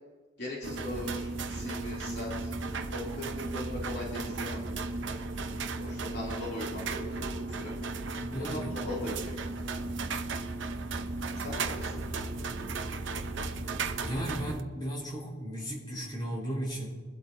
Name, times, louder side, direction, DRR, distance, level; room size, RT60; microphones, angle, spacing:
voice 1, 0.4-2.5 2.9-5.2 5.8-7.7 8.4-9.9 11.3-12.0, left 1 dB, 50° left, -5 dB, 2.9 m, -40 dB
sound 1, 0.6-14.6, right 3 dB, 65° right, 0.8 m, -35 dB
voice 2, 8.2-8.7 14.0-16.9, right 1 dB, 20° left, -3 dB, 4.3 m, -35 dB
22.5 x 12.0 x 2.7 m, 1.5 s
head